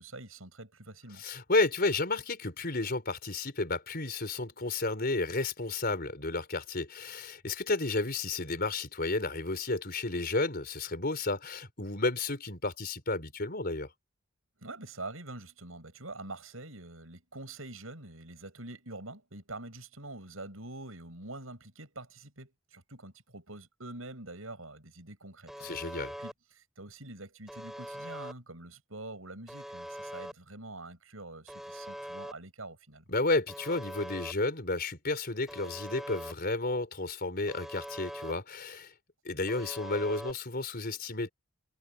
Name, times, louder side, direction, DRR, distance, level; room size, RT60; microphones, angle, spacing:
voice 1, 0.0-1.2 14.6-33.0, right 2 dB, 85° right, 7.9 m, -45 dB
voice 2, 1.2-13.9 25.6-26.1 33.1-38.9 39.2-41.3, left 2 dB, 50° left, 4.6 m, -32 dB
Alarm, 25.5-26.3 27.5-28.3 29.5-30.3 31.5-32.3 33.5-34.3 35.5-36.3 37.5-38.3 39.5-40.3, equal, ahead, 3.8 m, -42 dB
head